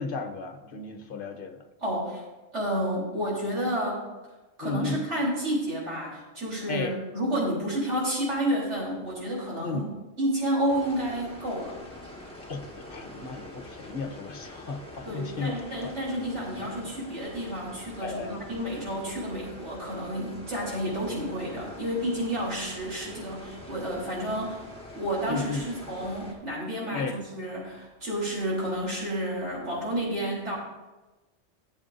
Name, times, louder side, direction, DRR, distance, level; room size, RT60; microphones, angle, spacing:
voice 1, 0.0-1.6 4.6-5.1 6.7-6.9 9.6-9.9 12.5-15.9 16.6-16.7 18.0-18.4 25.3-25.6 26.9-27.2, left 4 dB, 55° left, 6 dB, 1.0 m, -34 dB
voice 2, 1.8-2.2 2.5-4.1 4.6-9.8 10.2-11.8 15.1-24.7 24.9-30.6, equal, 85° right, -5 dB, 3.7 m, -30 dB
sound 1, 10.7-26.3, left 1 dB, 5° left, 1.6 m, -45 dB
15.0 x 7.3 x 2.6 m, 1.2 s
omnidirectional pair, 1.2 m